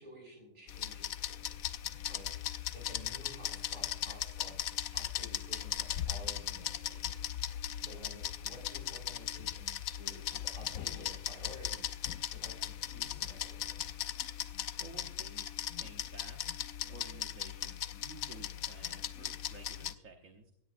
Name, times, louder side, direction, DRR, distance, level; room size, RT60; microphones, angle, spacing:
voice 1, 0.0-1.6 2.1-2.2 2.7-13.7, right 1 dB, 35° right, 0 dB, 6.1 m, -53 dB
sound 1, 0.7-19.9, left 10 dB, 70° left, 1.0 m, -38 dB
voice 2, 14.8-16.5 16.9-20.5, right 4 dB, 60° right, 4 dB, 1.4 m, -54 dB
17.0 x 16.0 x 2.5 m, 0.78 s
omnidirectional pair, 1.6 m